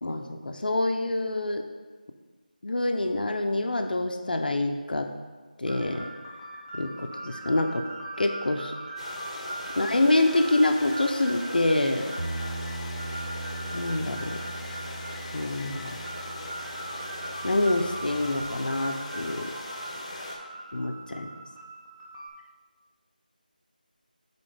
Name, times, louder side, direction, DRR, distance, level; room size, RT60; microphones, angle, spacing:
voice 1, 0.0-1.7 2.6-5.1 5.6-6.1 6.7-7.9 8.2-8.7 9.8-12.1 13.7-14.4 15.3-16.0 17.4-19.5 20.7-21.3, left 2 dB, 70° left, 5 dB, 0.6 m, -26 dB
sound 1, 5.6-22.3, right 1 dB, 5° left, 0.5 m, -40 dB
sound 2, 9.0-20.4, left 2 dB, 40° left, 0.8 m, -40 dB
Bass guitar, 12.2-18.4, right 2 dB, 55° right, 0.6 m, -39 dB
7.0 x 4.2 x 3.3 m, 1.4 s
figure-of-eight pair, 170°, 5 cm